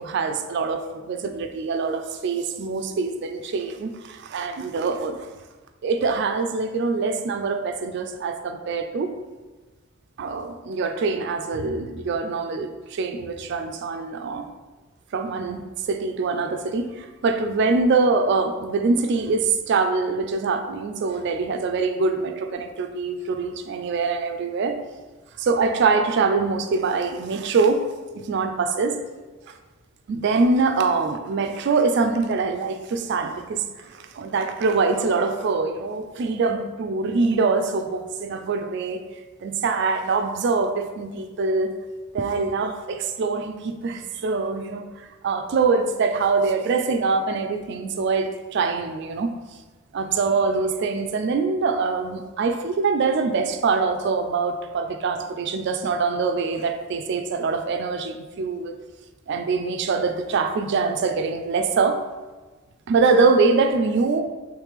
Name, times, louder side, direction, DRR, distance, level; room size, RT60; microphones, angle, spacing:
voice 1, 0.0-5.3 5.8-9.1 10.2-14.4 15.1-24.8 25.4-27.8 28.1-29.0 30.1-39.0 39.4-41.7 42.1-44.9 45.2-49.3 49.9-58.8 59.3-62.0 62.9-64.2, right 4 dB, 55° right, 7 dB, 0.3 m, -24 dB
3.2 x 3.1 x 3.4 m, 1.2 s
head